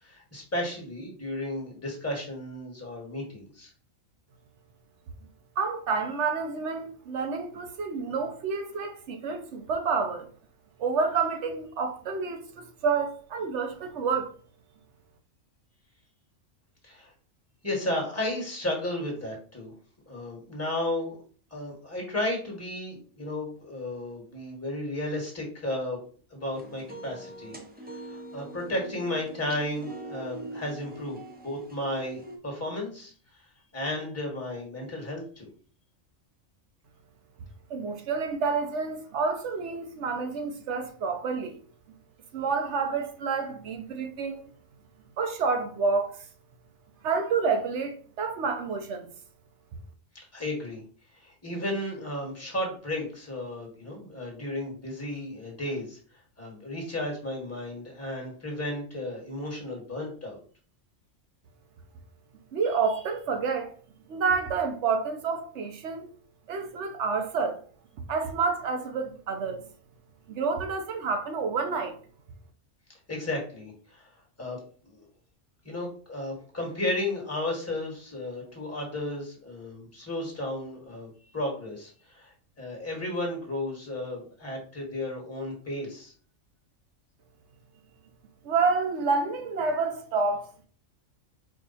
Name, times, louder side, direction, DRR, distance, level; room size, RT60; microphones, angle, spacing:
voice 1, 0.0-3.7 16.8-17.1 17.6-19.7 20.1-21.2 21.5-26.0 26.3-27.6 27.9-33.1 33.7-35.5 50.3-50.8 51.2-56.0 56.4-60.4 73.1-74.1 74.4-75.1 75.6-82.3 82.6-86.1, left 1 dB, 10° left, 1.5 m, -33 dB
voice 2, 5.6-10.3 10.8-14.3 37.7-41.6 42.3-44.4 45.2-46.2 47.0-49.1 62.5-63.7 64.1-66.1 66.5-67.6 68.1-69.6 70.3-72.0 88.4-90.7, right 4 dB, 65° right, 1.0 m, -29 dB
sound 1, 26.5-32.4, right 2 dB, 15° right, 0.4 m, -43 dB
4.7 x 2.5 x 4.1 m
omnidirectional pair, 1.3 m